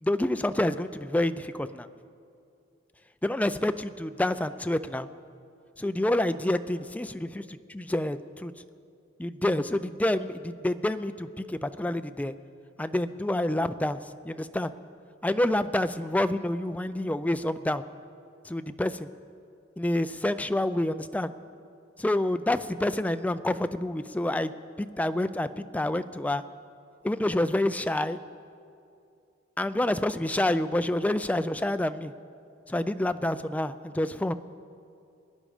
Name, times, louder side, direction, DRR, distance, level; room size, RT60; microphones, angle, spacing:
voice 1, 0.0-1.9 3.2-5.1 5.8-7.1 7.3-8.5 9.2-12.3 12.8-14.7 15.2-17.8 18.4-19.1 19.8-21.3 22.0-24.5 24.8-26.4 27.0-28.2 29.6-32.1 32.7-34.3, left 1 dB, 5° left, 11 dB, 0.4 m, -28 dB
22.5 x 10.0 x 4.9 m, 2.5 s
head